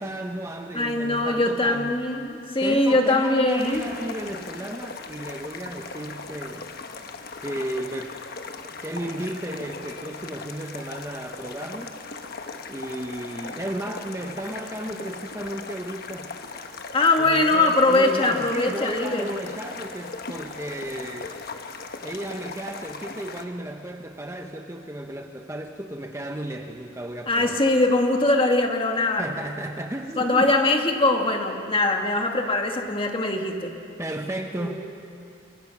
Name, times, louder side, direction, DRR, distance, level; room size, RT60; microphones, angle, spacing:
voice 1, 0.0-2.0 2.6-6.7 7.4-8.2 8.6-12.0 12.7-16.4 17.2-21.4 22.0-27.6 29.2-30.5 34.0-34.8, right 1 dB, 15° right, 4 dB, 0.8 m, -34 dB
voice 2, 0.7-3.8 16.9-19.3 27.3-29.3 30.2-33.7 34.6-34.7, left 2 dB, 25° left, 3 dB, 1.8 m, -22 dB
sound 1, 3.6-23.5, left 4 dB, 45° left, 1.2 m, -38 dB
29.0 x 23.0 x 5.9 m, 2.6 s
head